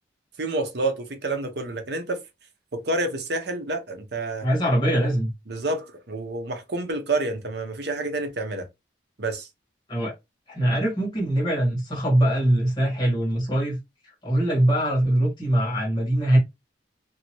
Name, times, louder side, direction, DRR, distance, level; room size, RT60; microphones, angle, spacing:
voice 1, 0.4-2.2 2.7-4.5 5.5-8.7 9.2-9.5, right 2 dB, 55° right, 0.8 m, -28 dB
voice 2, 4.4-5.3 9.9-10.1 10.5-13.8 14.2-16.4, right 1 dB, 25° left, 1.6 m, -22 dB
2.8 x 2.7 x 2.9 m
head